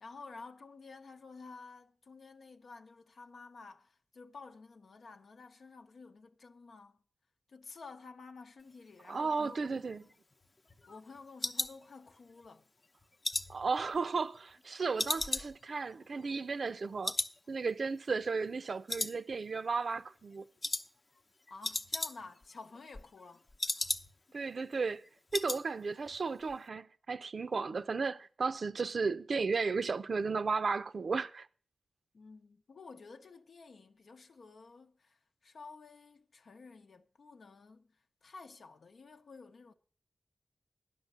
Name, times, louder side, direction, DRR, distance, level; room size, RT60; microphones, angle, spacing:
voice 1, 0.0-7.0 7.5-10.1 10.9-12.7 21.5-23.5 23.8-23.9 32.1-37.9 38.2-39.7, left 4 dB, 85° left, 0.8 m, -52 dB
voice 2, 9.1-10.0 13.5-17.1 17.5-20.5 24.3-25.0 25.3-31.5, right 4 dB, 65° right, 0.5 m, -34 dB
sound 1, 9.7-12.5 12.8-14.6 15.0-16.8 17.0-17.4 17.7-17.8 18.2-18.6 18.9-19.7 20.0-20.2 20.6-20.9 21.2-21.3 21.5-22.5 22.8-24.4 24.7-24.8 25.0-25.6 25.9-26.2 26.5-26.6, left 2 dB, 40° left, 0.7 m, -37 dB
11.0 x 6.3 x 7.9 m
wide cardioid pair, 110°, 0 cm